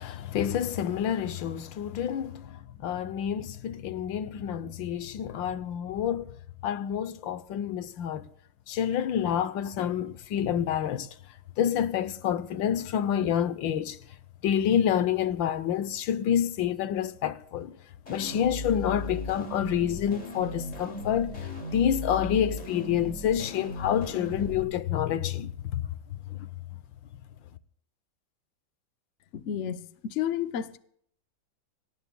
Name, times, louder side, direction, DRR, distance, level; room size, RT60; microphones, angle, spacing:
voice 1, 0.0-6.3 6.6-8.3 8.7-11.1 11.6-14.0 14.4-17.7 18.1-21.3 21.7-25.9 26.3-26.5, left 9 dB, 75° left, 1.5 m, -28 dB
sound 1, 18.1-24.6, left 1 dB, 40° left, 2.9 m, -37 dB
voice 2, 29.3-30.8, left 9 dB, 55° left, 0.8 m, -31 dB
25.0 x 17.5 x 2.2 m
omnidirectional pair, 2.2 m